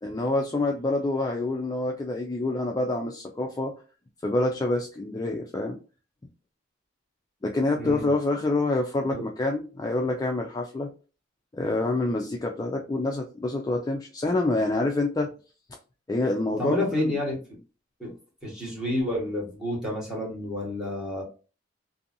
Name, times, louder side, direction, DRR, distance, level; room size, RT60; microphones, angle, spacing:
voice 1, 0.0-3.7 4.2-5.8 7.4-10.9 11.5-15.3 16.1-17.2, left 2 dB, 20° left, 1 dB, 0.3 m, -27 dB
voice 2, 7.8-8.1 9.1-9.2 16.4-17.4 18.0-18.1 18.4-21.2, left 1 dB, 5° right, -4 dB, 1.2 m, -29 dB
2.7 x 2.6 x 2.5 m, 0.34 s
head